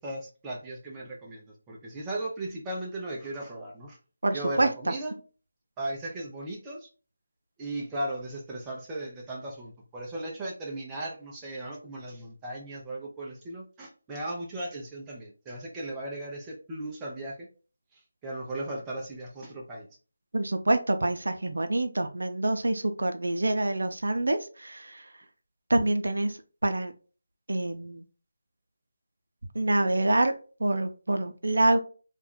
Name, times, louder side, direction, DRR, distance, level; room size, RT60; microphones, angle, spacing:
voice 1, 0.0-4.0 4.3-5.2 5.8-6.9 7.6-17.5 17.9-19.9, right 1 dB, 10° right, -3 dB, 0.5 m, -37 dB
voice 2, 4.2-4.9 20.3-25.1 25.7-26.4 26.6-26.9 27.5-28.0 29.5-30.3 30.6-31.8, right 2 dB, 80° right, 8 dB, 0.5 m, -26 dB
2.5 x 2.2 x 3.6 m, 0.36 s
figure-of-eight pair, 170°, 0 cm